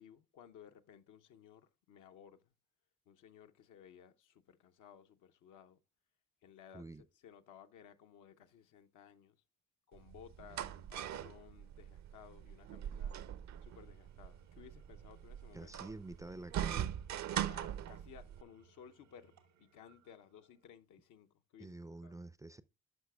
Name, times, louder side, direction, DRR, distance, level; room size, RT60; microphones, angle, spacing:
voice 1, 0.0-2.5 3.1-5.8 6.4-6.8 7.2-9.4 9.9-13.2 13.6-15.8 17.3-19.3 19.6-21.3 21.5-21.7 22.0-22.1, left 8 dB, 65° left, 0.7 m, -58 dB
sound 1, 9.9-18.4, right 10 dB, 55° right, 0.6 m, -41 dB
Engine / Tools, 13.4-20.9, right 5 dB, 85° right, 1.3 m, -69 dB
voice 2, 15.5-16.9 21.6-22.6, right 2 dB, 10° right, 0.4 m, -48 dB
10.5 x 5.8 x 2.3 m
hypercardioid pair, 50°, 33 cm